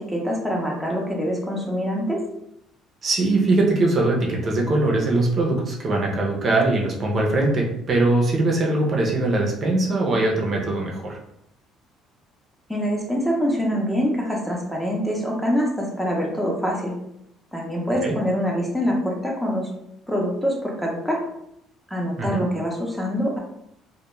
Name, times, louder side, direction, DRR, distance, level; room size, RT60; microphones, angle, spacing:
voice 1, 0.0-2.2 12.7-16.9 17.5-19.7 20.1-21.2 21.9-23.4, equal, ahead, -2 dB, 0.6 m, -25 dB
voice 2, 3.0-11.2 18.0-18.2 22.2-22.4, right 2 dB, 40° right, -1 dB, 0.6 m, -21 dB
2.2 x 2.1 x 3.0 m, 0.78 s
cardioid pair, 105°, 0 cm